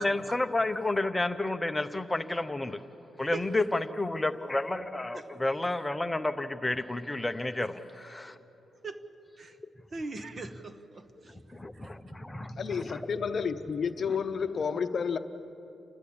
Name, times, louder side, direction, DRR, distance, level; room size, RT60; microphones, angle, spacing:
voice 1, 0.0-2.8 3.2-7.7 8.1-8.3 11.5-13.0 14.1-14.2, left 2 dB, 10° left, 0.8 m, -31 dB
voice 2, 9.9-11.3 11.7-11.9, right 3 dB, 30° right, 1.0 m, -40 dB
voice 3, 12.6-15.2, left 6 dB, 45° left, 0.8 m, -30 dB
30.0 x 12.5 x 8.6 m
cardioid pair, 145°, 0 cm